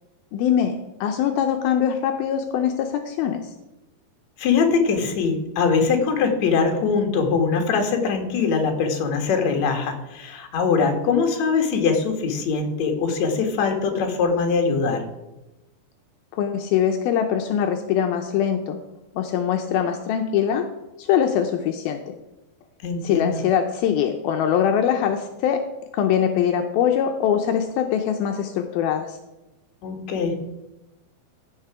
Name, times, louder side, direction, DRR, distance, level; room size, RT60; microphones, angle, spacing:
voice 1, 0.3-3.4 16.3-18.8 19.2-20.7 21.0-22.1 23.0-25.6 25.9-29.2, left 9 dB, 80° left, 5 dB, 2.5 m, -22 dB
voice 2, 4.4-15.0 22.8-23.4 29.8-30.4, left 5 dB, 55° left, 4 dB, 2.5 m, -22 dB
15.5 x 6.7 x 4.8 m, 1.0 s
omnidirectional pair, 4.4 m